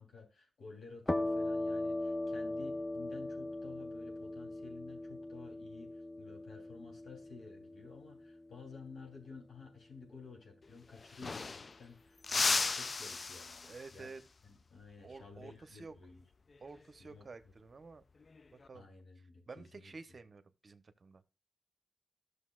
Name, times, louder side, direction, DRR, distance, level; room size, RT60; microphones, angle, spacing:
voice 1, 0.0-14.1 14.4-16.2 17.0-17.3 18.7-19.9, left 4 dB, 75° left, 0 dB, 3.1 m, -53 dB
sound 1, 1.1-8.5, left 2 dB, 15° left, 0.8 m, -39 dB
sound 2, 10.6-10.7 10.9-11.9 12.2-14.0 16.5-16.8 18.2-18.7, left 4 dB, 50° left, 0.4 m, -35 dB
voice 2, 13.7-14.2 15.0-15.9 16.6-18.0 18.5-18.9 19.5-21.3, right 4 dB, 50° right, 10 dB, 0.8 m, -51 dB
12.5 x 6.6 x 2.4 m, 0.28 s
cardioid pair, 50°, 0 cm